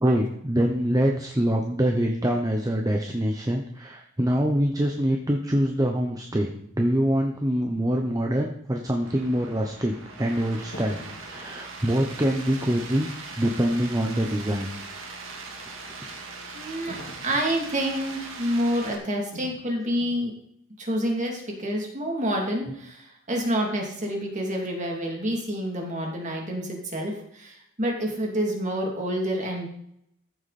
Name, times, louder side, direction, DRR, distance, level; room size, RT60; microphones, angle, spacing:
voice 1, 0.0-9.9 10.2-13.1 13.4-14.7 15.6-15.8, equal, 15° right, 2 dB, 0.9 m, -25 dB
sound 1, 9.0-19.0, right 3 dB, 65° right, 2.2 m, -40 dB
sound 2, 10.7-11.3 16.9-17.4 19.3-19.6 20.0-20.3, left 1 dB, 60° left, 2.0 m, -42 dB
voice 2, 16.5-20.3 20.8-29.7, equal, 35° right, 0 dB, 2.8 m, -28 dB
14.5 x 8.3 x 4.3 m, 0.73 s
head